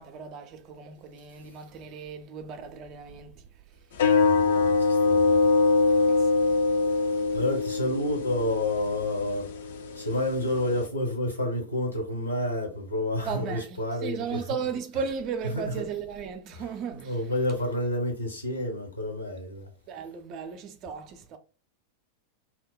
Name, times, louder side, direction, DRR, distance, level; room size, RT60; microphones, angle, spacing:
voice 1, 0.0-3.4 6.1-6.3 13.2-17.4 19.9-21.4, right 6 dB, 40° right, 0.4 m, -36 dB
sound 1, 3.9-10.9, left 4 dB, 60° left, 0.3 m, -24 dB
voice 2, 4.2-5.4 7.3-9.5 10.0-14.4 15.5-15.8 16.6-16.7 16.9-19.7, left 1 dB, 80° left, 0.7 m, -29 dB
2.7 x 2.0 x 2.2 m
figure-of-eight pair, 90°, 0 cm